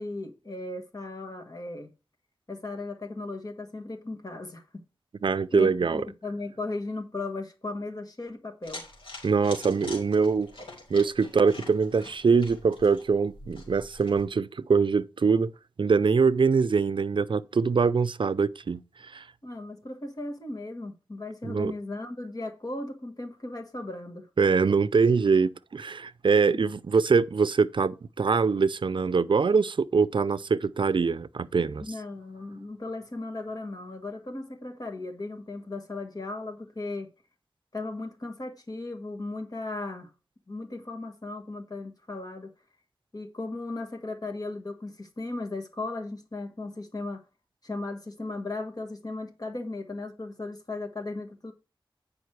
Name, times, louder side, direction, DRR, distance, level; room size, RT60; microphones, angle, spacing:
voice 1, 0.0-1.9 2.5-4.6 5.5-8.8 19.4-24.3 26.5-26.6 31.8-37.1 37.7-40.1 40.5-42.5 43.1-47.2 47.6-51.5, left 2 dB, 45° left, 1.6 m, -36 dB
voice 2, 5.2-6.0 9.2-10.5 10.9-15.5 15.8-19.2 21.4-21.7 24.4-31.8, right 5 dB, 65° right, 0.5 m, -23 dB
sound 1, 8.6-14.2, left 2 dB, 85° left, 3.0 m, -45 dB
9.3 x 5.3 x 4.7 m
wide cardioid pair, 50°, 9 cm